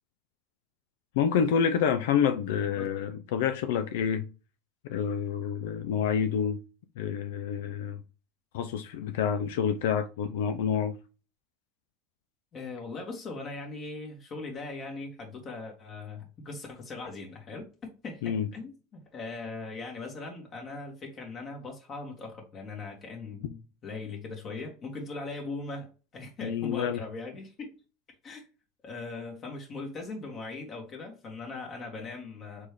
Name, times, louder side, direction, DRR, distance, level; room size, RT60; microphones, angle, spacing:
voice 1, 1.1-4.3 4.8-6.6 7.0-8.0 8.5-11.0 18.2-18.5 26.4-27.0, left 7 dB, 70° left, 0.4 m, -28 dB
voice 2, 12.5-17.7 18.0-27.7 28.2-28.4 28.8-32.7, left 3 dB, 40° left, 1.6 m, -40 dB
4.3 x 3.3 x 3.3 m
hypercardioid pair, 90°, 0 cm